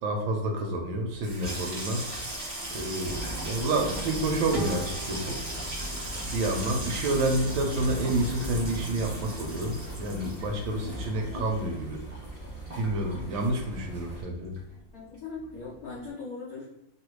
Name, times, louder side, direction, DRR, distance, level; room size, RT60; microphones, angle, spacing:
voice 1, 0.0-2.2 2.7-5.4 6.2-12.0 12.8-14.5, right 1 dB, 75° right, 2 dB, 1.2 m, -29 dB
Water tap faucet / Sink (filling or washing), 1.1-13.9 14.2-14.9 15.1-15.5, right 1 dB, 60° right, 0.4 m, -38 dB
sound 1, 3.0-14.2, right 1 dB, 25° left, 1.1 m, -40 dB
sound 2, 4.5-7.4, right 3 dB, 35° right, 0.8 m, -40 dB
voice 2, 14.9-16.7, left 4 dB, 80° left, -4 dB, 0.8 m, -39 dB
3.3 x 2.4 x 2.9 m, 0.88 s
omnidirectional pair, 2.3 m